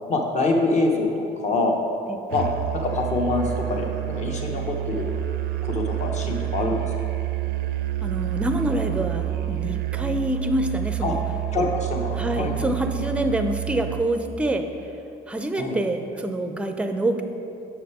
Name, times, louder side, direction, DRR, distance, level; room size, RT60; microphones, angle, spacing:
voice 1, 0.1-1.8 2.3-2.5 2.7-5.1 5.7-6.9 11.0-11.1 11.5-12.7 15.5-15.8, left 2 dB, 45° left, 2 dB, 1.0 m, -25 dB
Musical instrument, 2.3-14.2, right 13 dB, 70° right, 0.4 m, -28 dB
voice 2, 8.0-11.2 12.1-14.7 15.3-17.2, right 1 dB, 5° right, 6 dB, 0.5 m, -26 dB
6.0 x 5.9 x 4.8 m, 2.8 s
cardioid pair, 110°, 17 cm